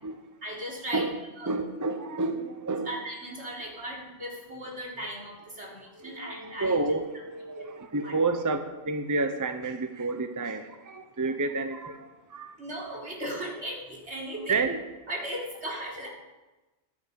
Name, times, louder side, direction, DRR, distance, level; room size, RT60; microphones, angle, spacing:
voice 1, 0.4-1.1 1.4-1.5 2.8-6.7 7.5-7.6 8.0-8.2 12.6-14.6 15.1-16.1, right 1 dB, 80° right, -3 dB, 4.3 m, -37 dB
voice 2, 1.5-2.9 6.0-12.6 14.5-14.8, right 3 dB, 20° right, 8 dB, 0.8 m, -30 dB
15.0 x 11.5 x 5.3 m, 1.1 s
omnidirectional pair, 1.1 m